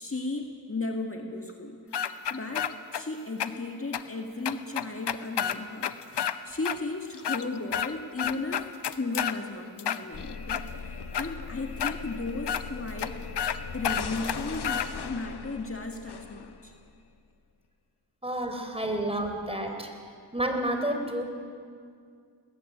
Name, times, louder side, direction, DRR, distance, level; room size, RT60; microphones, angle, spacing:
voice 1, 0.0-1.8 2.2-5.9 6.5-8.7 9.0-13.2 13.7-16.7, left 3 dB, 35° left, 3 dB, 1.9 m, -35 dB
sound 1, 1.9-3.0 3.4-3.5 3.9-4.0 4.4-6.3 6.6-6.8 7.1-7.9 8.2-9.4 9.8-10.6 11.1-11.3 11.8-11.9 12.5-12.6 13.0-13.1 13.4-13.6 13.8-14.9, left 8 dB, 90° left, 0.8 m, -29 dB
sound 2, 10.1-17.0, left 5 dB, 70° left, 1.1 m, -39 dB
voice 2, 18.2-19.9 20.3-21.2, right 1 dB, 15° right, 4 dB, 4.1 m, -30 dB
20.0 x 14.5 x 9.8 m, 2.2 s
cardioid pair, 50°, 40 cm